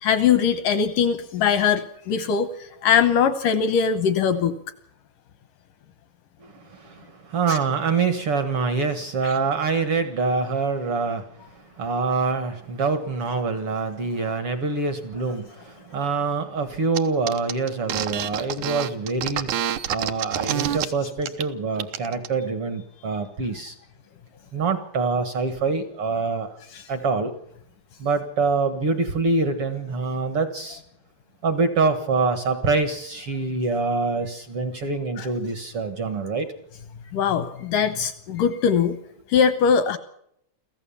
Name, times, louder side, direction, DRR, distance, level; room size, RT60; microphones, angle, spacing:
voice 1, 0.0-4.6 7.5-7.6 9.2-9.3 35.2-35.3 37.1-39.0 39.3-40.0, left 7 dB, 80° left, 11 dB, 1.9 m, -21 dB
voice 2, 6.4-19.6 19.9-23.8 24.5-26.6 26.9-27.3 28.0-30.8 31.4-36.5, right 4 dB, 70° right, 9 dB, 1.3 m, -25 dB
sound 1, 16.9-17.0 17.3-20.8 21.2-21.5 21.8-22.3, right 11 dB, 90° right, 1.7 m, -27 dB
25.5 x 15.0 x 7.1 m, 0.73 s
omnidirectional pair, 5.1 m